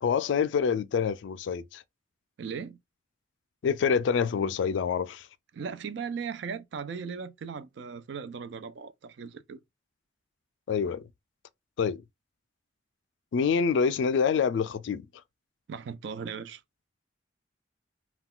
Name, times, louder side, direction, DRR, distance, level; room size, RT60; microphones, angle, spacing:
voice 1, 0.0-1.8 3.6-5.3 10.7-11.0 11.8-12.0 13.3-15.1, left 6 dB, 70° left, 0.3 m, -26 dB
voice 2, 2.4-2.8 5.5-9.6 15.7-16.6, right 6 dB, 65° right, 0.4 m, -37 dB
2.3 x 2.2 x 3.6 m
head